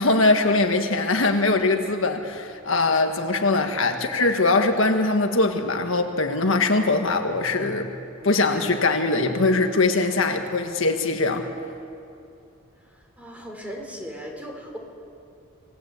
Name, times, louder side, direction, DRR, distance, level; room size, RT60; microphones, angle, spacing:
voice 1, 0.0-7.9 8.2-11.5, left 3 dB, 65° left, 5 dB, 1.6 m, -22 dB
voice 2, 13.2-14.8, equal, 5° right, 1 dB, 3.8 m, -37 dB
27.5 x 19.0 x 8.3 m, 2.8 s
head